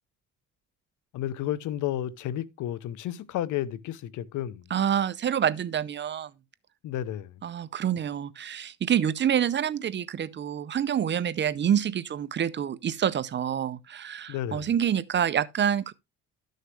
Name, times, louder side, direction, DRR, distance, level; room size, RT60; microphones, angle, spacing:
voice 1, 1.1-4.6 6.8-7.3 14.3-14.7, left 12 dB, 70° left, 0.8 m, -32 dB
voice 2, 4.7-6.3 7.4-15.9, right 9 dB, 35° right, 0.6 m, -27 dB
12.5 x 6.5 x 3.2 m
cardioid pair, 105°, 31 cm